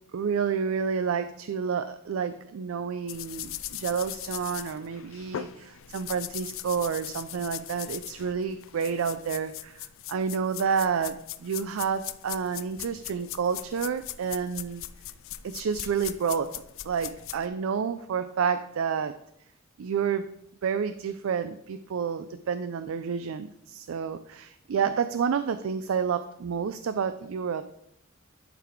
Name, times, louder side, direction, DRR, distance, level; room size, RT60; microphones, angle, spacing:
voice 1, 0.1-14.8 15.4-16.5 16.8-19.1 19.8-20.3 20.6-27.6, right 6 dB, 75° right, 11 dB, 0.4 m, -29 dB
sound 1, 3.1-17.5, left 13 dB, 70° left, 0.4 m, -40 dB
10.5 x 4.0 x 4.5 m, 0.76 s
head